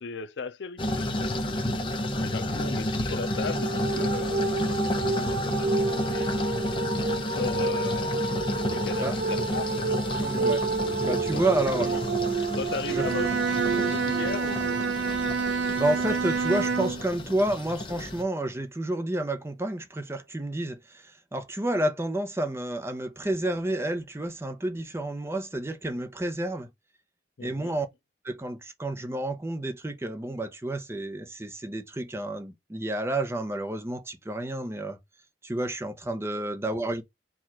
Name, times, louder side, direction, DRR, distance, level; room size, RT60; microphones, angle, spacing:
voice 1, 0.0-1.4 2.2-4.6 4.9-6.5 7.0-8.2 8.7-10.3 10.8-11.4 11.8-12.0 12.6-14.8 16.1-16.2 16.6-16.7 27.4-27.8, left 4 dB, 75° left, 0.5 m, -37 dB
sound 1, 0.8-18.2, left 1 dB, 30° left, 0.8 m, -31 dB
sound 2, 3.2-16.0, right 3 dB, 65° right, 0.8 m, -30 dB
voice 2, 10.2-10.6 11.0-12.0 12.9-13.0 15.8-26.7 27.4-27.9 28.2-35.0 35.4-37.0, right 1 dB, 15° right, 0.6 m, -30 dB
Bowed string instrument, 12.9-17.1, right 5 dB, 85° right, 0.4 m, -28 dB
4.6 x 2.4 x 4.4 m
head